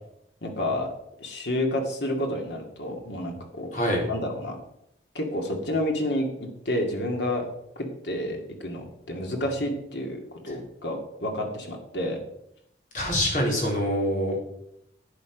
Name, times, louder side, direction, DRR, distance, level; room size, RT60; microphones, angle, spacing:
voice 1, 0.4-0.9 1.2-3.7 4.1-4.6 5.1-7.5 7.8-12.2, left 1 dB, 80° left, 2 dB, 2.3 m, -30 dB
voice 2, 3.7-4.0 12.9-14.4, equal, 45° left, -1 dB, 3.7 m, -25 dB
11.0 x 8.7 x 5.2 m, 0.76 s
head